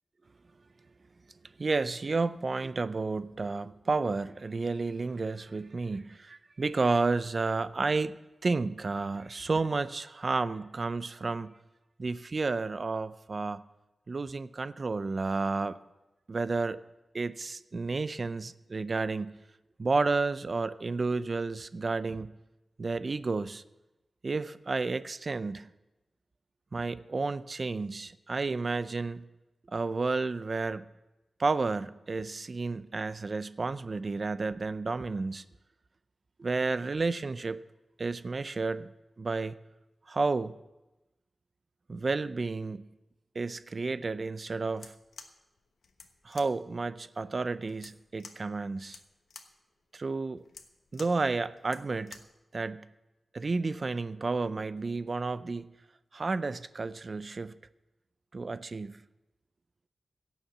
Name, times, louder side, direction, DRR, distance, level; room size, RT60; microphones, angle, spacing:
voice 1, 1.6-8.2 8.4-11.5 12.0-13.6 14.1-15.8 16.3-16.8 17.1-19.4 19.8-22.3 22.8-23.6 24.2-25.7 26.7-29.2 29.7-30.9 31.4-35.4 36.4-37.6 38.0-38.9 39.2-39.6 40.1-40.6 41.9-42.9 43.4-44.9 46.2-49.0 49.9-50.4 50.9-52.2 52.5-52.9 53.3-55.7 56.1-57.5 58.3-59.0, right 3 dB, 40° right, 0.4 m, -31 dB
sound 1, 44.7-52.4, left 5 dB, 90° left, 1.1 m, -52 dB
17.0 x 7.2 x 6.7 m
wide cardioid pair, 145°, 0 cm